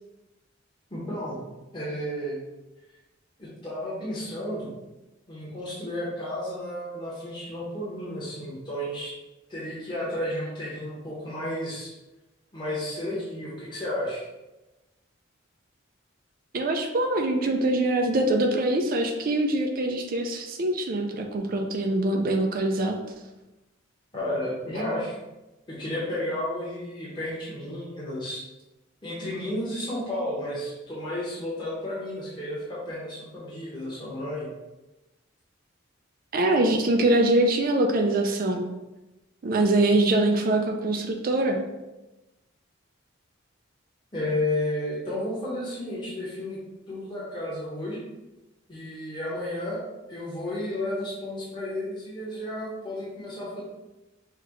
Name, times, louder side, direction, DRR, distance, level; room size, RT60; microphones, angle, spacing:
voice 1, 0.9-1.5 1.7-2.4 3.4-4.7 5.3-9.1 9.5-11.9 12.5-14.2 24.1-25.2 25.7-28.4 29.0-34.5 44.1-46.6 46.9-48.0 48.7-49.8 50.1-53.6, left 1 dB, 25° left, -8 dB, 1.1 m, -32 dB
voice 2, 16.5-23.0 36.3-38.6 39.4-41.6, right 2 dB, 45° right, 3 dB, 0.4 m, -23 dB
5.8 x 2.4 x 3.0 m, 1.0 s
head